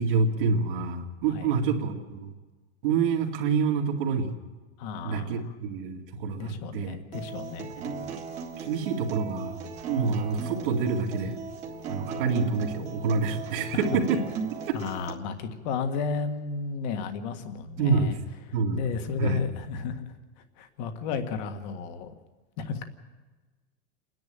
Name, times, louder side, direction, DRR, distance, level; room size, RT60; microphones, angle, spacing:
voice 1, 0.0-2.3 2.8-4.3 5.0-7.0 7.8-7.9 8.6-9.6 9.9-11.4 11.9-14.2 14.7-14.8 17.8-18.2 18.5-18.9 19.2-19.4, right 5 dB, 50° right, 3 dB, 2.3 m, -27 dB
voice 2, 4.8-5.5 6.4-7.7 13.7-14.0 14.7-18.2 18.5-20.1 20.6-22.1 22.6-22.8, left 5 dB, 40° left, 7 dB, 1.7 m, -33 dB
Acoustic guitar, 7.1-15.1, right 5 dB, 20° right, 1.6 m, -37 dB
28.5 x 10.5 x 8.9 m, 1.3 s
supercardioid pair, 170°, 33 cm